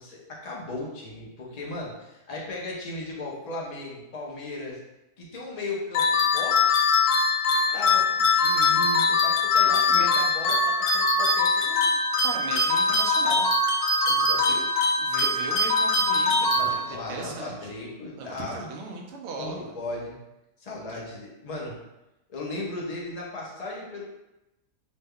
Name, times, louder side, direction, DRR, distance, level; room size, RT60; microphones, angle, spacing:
voice 1, 0.0-4.8 5.2-6.8 7.7-11.9 14.1-14.6 16.5-18.8 19.4-20.1 20.6-21.7 22.3-24.0, left 2 dB, 50° left, -3 dB, 0.5 m, -36 dB
sound 1, 5.9-17.2, left 3 dB, 85° left, 1.1 m, -22 dB
voice 2, 9.6-10.1 12.2-13.5 14.4-14.6 15.0-17.7 18.2-19.8 20.9-21.0, right 3 dB, 65° right, 1 dB, 0.7 m, -37 dB
3.0 x 2.2 x 3.5 m, 0.94 s
omnidirectional pair, 1.6 m